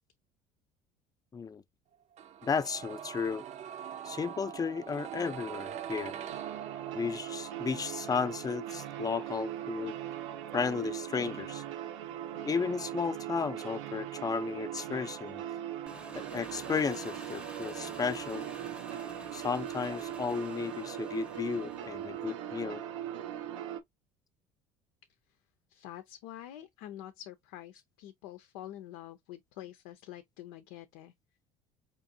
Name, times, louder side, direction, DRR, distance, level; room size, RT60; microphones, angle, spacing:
sound 1, 2.2-14.0 14.3-14.4, right 9 dB, 45° right, 0.6 m, -45 dB
voice 1, 2.4-3.4 4.0-6.2 6.9-10.0 10.5-11.6 12.4-15.4 16.1-18.5 19.3-22.8, left 5 dB, 25° left, 0.5 m, -34 dB
sound 2, 6.3-23.8, right 11 dB, 85° right, 0.6 m, -40 dB
Engine, 15.9-22.4, right 1 dB, 5° right, 0.8 m, -50 dB
voice 2, 25.7-31.1, left 12 dB, 75° left, 0.6 m, -47 dB
5.1 x 2.6 x 2.6 m
hypercardioid pair, 75°, 16 cm